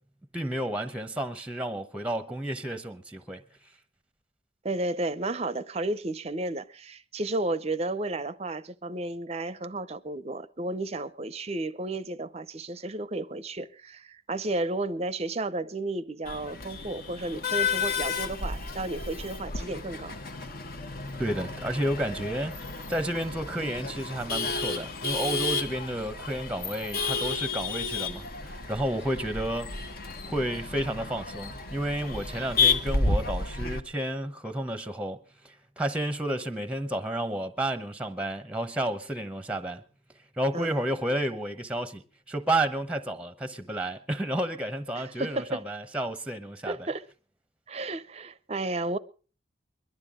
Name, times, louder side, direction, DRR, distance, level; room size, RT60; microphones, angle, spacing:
voice 1, 0.3-3.4 21.2-22.6 22.9-29.8 30.3-35.2 35.4-39.8 40.4-46.9, right 1 dB, 5° right, 0.8 m, -31 dB
voice 2, 4.6-20.2 32.4-32.5 40.5-40.7 45.0-45.6 46.7-47.1 47.7-49.0, right 2 dB, 35° right, 0.6 m, -33 dB
Male speech man speaking / Laughter / Chatter, 16.3-33.8, left 4 dB, 50° left, 1.1 m, -32 dB
22.0 x 12.0 x 3.7 m
head